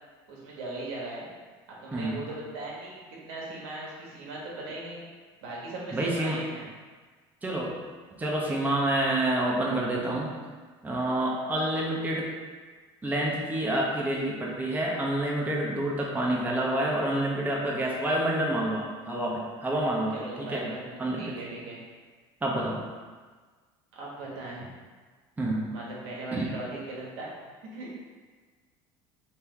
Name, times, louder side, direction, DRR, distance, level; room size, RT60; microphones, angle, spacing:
voice 1, 0.3-1.3 1.8-5.0 5.4-6.7 20.1-21.8 23.9-24.7 25.7-27.4 27.7-28.0, right 2 dB, 80° right, -4 dB, 1.1 m, -39 dB
voice 2, 1.9-2.2 5.9-6.4 7.4-7.8 8.2-10.3 10.8-12.3 13.0-20.7 21.0-21.3 22.4-22.8 25.4-25.7 26.3-26.5, right 1 dB, 15° right, -3 dB, 0.8 m, -28 dB
3.3 x 2.9 x 3.6 m, 1.4 s
supercardioid pair, 100°, 12 cm